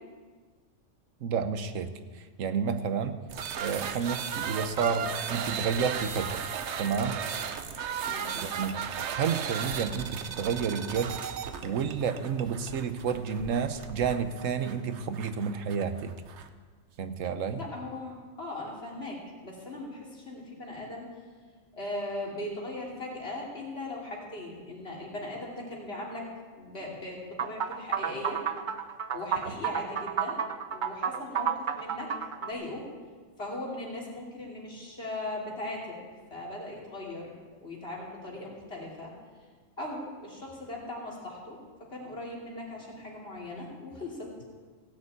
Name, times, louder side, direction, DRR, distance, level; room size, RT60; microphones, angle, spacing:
voice 1, 1.2-3.2 3.6-6.5 6.8-7.2 8.3-8.8 9.1-11.2 11.6-16.1 17.0-17.6, right 6 dB, 90° right, 10 dB, 1.2 m, -30 dB
sound 1, 3.3-16.5, right 7 dB, 65° right, 1.0 m, -36 dB
voice 2, 8.1-8.5 17.5-21.0 21.7-26.3 26.6-28.4 29.1-30.4 30.7-32.1 32.4-32.9 33.4-36.0 36.3-37.3 37.6-39.1 39.8-41.6 41.9-44.3, left 1 dB, 55° left, -3 dB, 3.2 m, -39 dB
sound 2, 27.4-32.5, right 8 dB, 50° right, 0.7 m, -31 dB
16.5 x 6.8 x 8.6 m, 1.5 s
omnidirectional pair, 1.3 m